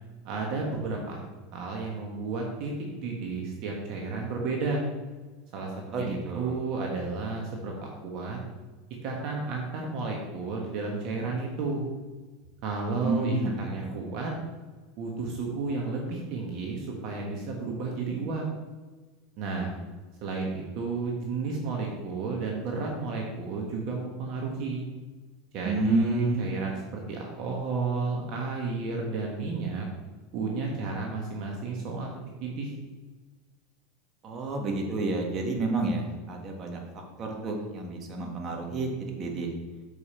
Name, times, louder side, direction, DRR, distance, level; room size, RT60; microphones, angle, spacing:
voice 1, 0.2-1.2 1.5-4.8 5.5-8.4 9.0-11.8 12.6-14.3 15.0-18.4 19.4-19.7 20.2-24.9 25.5-29.9 30.3-32.1 32.4-32.7, right 4 dB, 55° right, 0 dB, 1.3 m, -32 dB
voice 2, 5.9-6.6 13.0-13.8 25.6-26.4 34.2-38.9 39.2-39.5, right 3 dB, 35° right, 1 dB, 1.5 m, -29 dB
6.8 x 5.1 x 4.3 m, 1.3 s
supercardioid pair, 125°, 0 cm